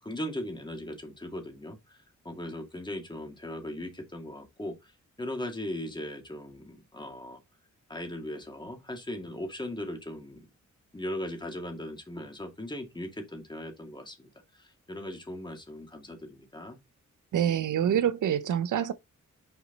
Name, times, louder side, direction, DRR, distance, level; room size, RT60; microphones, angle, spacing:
voice 1, 0.0-4.9 5.2-7.4 7.9-10.5 10.9-16.8, left 1 dB, 15° left, 2.3 m, -38 dB
voice 2, 17.3-18.9, right 9 dB, 90° right, 0.7 m, -26 dB
6.3 x 5.1 x 4.0 m
wide cardioid pair, 105°, 30 cm